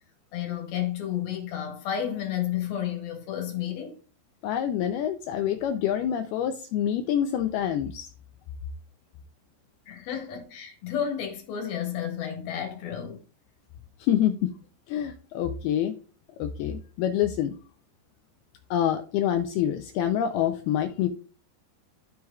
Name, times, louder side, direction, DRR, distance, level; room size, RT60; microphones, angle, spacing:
voice 1, 0.3-3.9 9.9-13.2, left 10 dB, 60° left, 3.4 m, -31 dB
voice 2, 4.4-8.1 14.0-14.5 14.9-15.9 16.4-17.6 18.7-21.1, left 10 dB, 90° left, 2.2 m, -26 dB
13.5 x 4.7 x 2.3 m
omnidirectional pair, 5.1 m